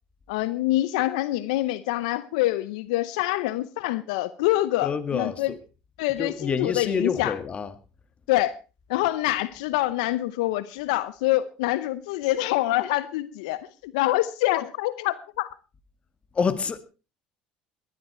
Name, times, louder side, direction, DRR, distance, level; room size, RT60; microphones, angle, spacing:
voice 1, 0.3-5.5 6.0-7.3 8.3-8.5 8.9-15.5, left 16 dB, 80° left, 0.7 m, -26 dB
voice 2, 4.8-5.6 6.2-7.7 16.3-16.8, left 6 dB, 35° left, 1.9 m, -27 dB
19.0 x 12.0 x 4.3 m
hypercardioid pair, 75°, 4 cm